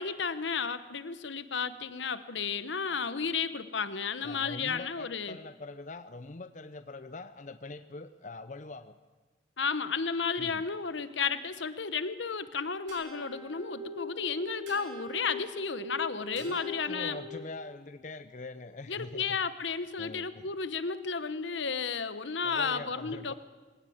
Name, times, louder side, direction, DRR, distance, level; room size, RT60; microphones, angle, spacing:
voice 1, 0.0-5.4 9.6-17.2 18.9-23.3, left 5 dB, 70° left, 13 dB, 1.0 m, -33 dB
voice 2, 4.2-8.9 10.4-10.6 16.4-19.4 20.0-20.5 22.4-23.3, left 2 dB, 40° left, 10 dB, 0.6 m, -43 dB
sound 1, 12.9-17.7, left 1 dB, 80° right, 6.3 m, -42 dB
21.0 x 17.0 x 8.8 m, 1.3 s
head